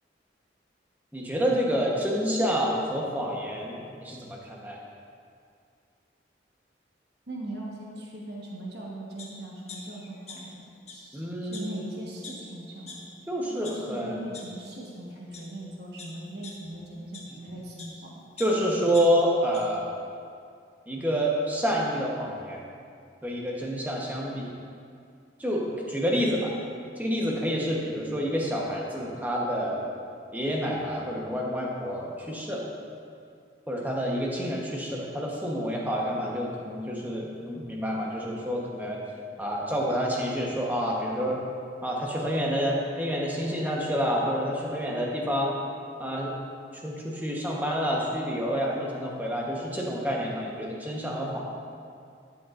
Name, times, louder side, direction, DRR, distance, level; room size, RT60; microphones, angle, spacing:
voice 1, 1.1-4.8 11.1-11.9 13.3-14.3 18.4-19.9 20.9-22.6 23.2-24.5 25.4-26.5 27.0-29.9 30.3-32.6 33.7-39.0 39.4-41.4 41.8-45.6 46.0-46.4 46.8-51.4, equal, 10° right, -3 dB, 1.0 m, -28 dB
voice 2, 7.3-10.6 10.9-13.1 13.5-18.2, right 1 dB, 65° right, -3 dB, 1.2 m, -40 dB
sound 1, 9.2-9.3 9.7-10.6 10.8-10.9 11.5-11.6 12.2-12.3 12.9-13.0 13.4-13.7 14.3-14.4 15.1-15.4 16.0-17.9 18.4-19.6 20.0-20.1, left 5 dB, 35° left, 1.2 m, -44 dB
12.0 x 7.7 x 2.5 m, 2.3 s
head